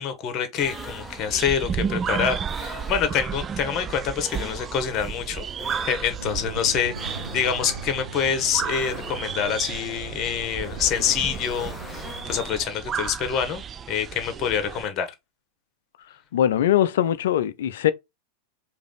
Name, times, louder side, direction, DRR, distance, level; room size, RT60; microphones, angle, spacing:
voice 1, 0.0-15.1, left 8 dB, 35° left, 1.2 m, -26 dB
sound 1, 0.6-1.6 2.4-3.5 4.2-13.0, left 3 dB, 10° left, 0.8 m, -44 dB
sound 2, 0.6-14.9, right 7 dB, 25° right, 0.3 m, -33 dB
sound 3, 6.2-12.3, right 4 dB, 70° right, 0.5 m, -39 dB
voice 2, 16.3-17.9, left 11 dB, 55° left, 0.5 m, -21 dB
4.9 x 2.7 x 3.8 m
figure-of-eight pair, 90°, 0 cm